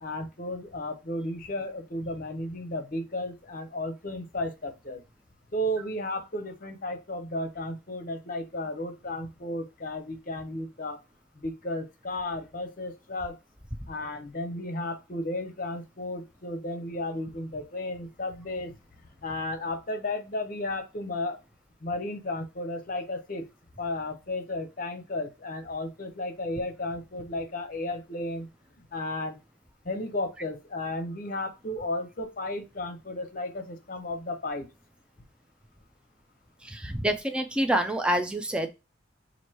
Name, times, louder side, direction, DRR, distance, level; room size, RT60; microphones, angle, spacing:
voice 1, 0.0-5.0 5.5-11.0 11.4-13.4 13.9-18.7 19.2-21.4 21.8-23.4 23.8-28.5 28.9-29.4 29.8-34.7, left 1 dB, 45° left, 0.7 m, -34 dB
voice 2, 36.6-38.7, right 1 dB, 5° right, 0.4 m, -27 dB
3.0 x 2.6 x 4.4 m
head